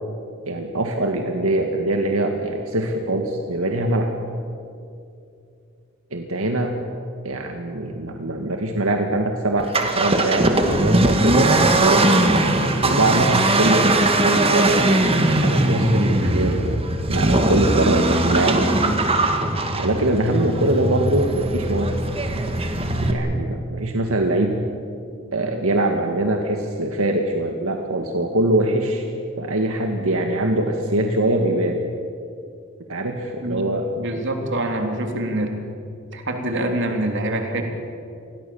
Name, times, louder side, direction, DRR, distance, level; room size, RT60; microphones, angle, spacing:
voice 1, 0.5-4.1 6.1-6.7 7.2-12.1 12.8-16.8 17.1-18.6 19.8-22.0 23.1-24.6 25.3-29.1 29.4-31.8 32.9-33.9, right 1 dB, 85° right, 3 dB, 2.0 m, -23 dB
Accelerating revving vroom, 9.6-23.1, right 1 dB, 30° right, 2.1 m, -20 dB
voice 2, 34.0-35.6 36.1-37.6, right 1 dB, 60° right, 3 dB, 3.6 m, -25 dB
28.5 x 21.5 x 7.2 m, 2.5 s
head